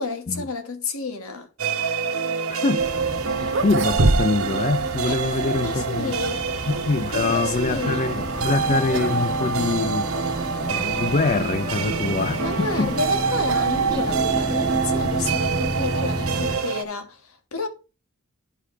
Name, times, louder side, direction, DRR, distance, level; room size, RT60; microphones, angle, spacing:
voice 1, 0.0-1.5 5.1-6.5 7.1-8.0 12.4-17.7, left 3 dB, 80° left, 1.7 m, -30 dB
sound 1, 1.6-16.8, right 5 dB, 85° right, 1.3 m, -26 dB
voice 2, 2.5-2.9 3.4-6.2 6.7-10.1 10.6-12.9, left 3 dB, 35° left, 0.4 m, -24 dB
sound 2, 2.8-16.6, right 1 dB, 20° right, 1.7 m, -31 dB
sound 3, 3.5-4.6 4.8-4.9 5.8-6.5 8.3-8.6 8.9-9.2 9.5-9.6 10.4-10.5 12.3-14.4, right 2 dB, 60° right, 0.9 m, -26 dB
11.5 x 4.9 x 3.2 m
head